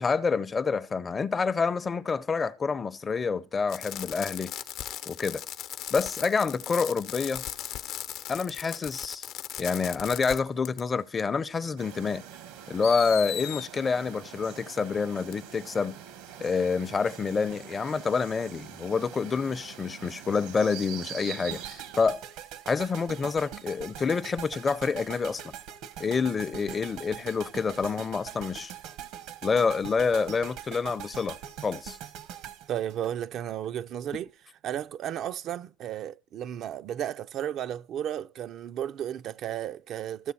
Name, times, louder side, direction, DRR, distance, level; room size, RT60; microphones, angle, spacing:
voice 1, 0.0-4.5 5.1-5.4 5.9-7.4 8.3-9.3 9.6-12.2 12.7-16.0 16.4-22.2 22.7-25.5 26.0-28.7 29.4-31.4 31.6-32.0, left 5 dB, 25° left, 0.6 m, -28 dB
Fireworks, 3.7-10.4 10.6-10.8 11.9-12.0 12.8-13.7 15.3-15.4, left 11 dB, 60° left, 0.8 m, -37 dB
sound 1, 11.8-22.2, right 10 dB, 85° right, 1.6 m, -44 dB
sound 2, 21.5-33.7, right 10 dB, 70° right, 1.1 m, -42 dB
voice 2, 32.7-34.3 34.6-40.3, right 10 dB, 55° right, 0.5 m, -33 dB
14.0 x 6.8 x 4.2 m
supercardioid pair, 110°, 0 cm